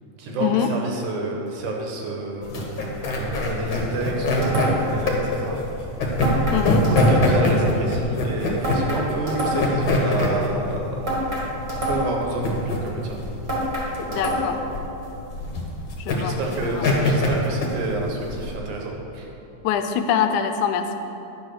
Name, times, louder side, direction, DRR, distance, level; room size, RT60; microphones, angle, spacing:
voice 1, 0.2-5.6 6.9-11.0 11.7-13.2 16.1-19.3, right 2 dB, 80° right, 0 dB, 2.6 m, -29 dB
sound 1, 2.4-18.6, left 1 dB, 55° left, 1.6 m, -23 dB
sound 2, 4.4-5.0 6.2-7.4 8.6-9.9 11.1-12.3 13.5-14.7, equal, 20° right, 1.8 m, -26 dB
voice 2, 6.5-6.9 14.1-14.6 16.0-16.4 16.6-16.8 19.6-20.9, left 8 dB, 80° left, 7 dB, 2.0 m, -24 dB
10.5 x 4.8 x 6.3 m, 3.0 s
omnidirectional pair, 3.5 m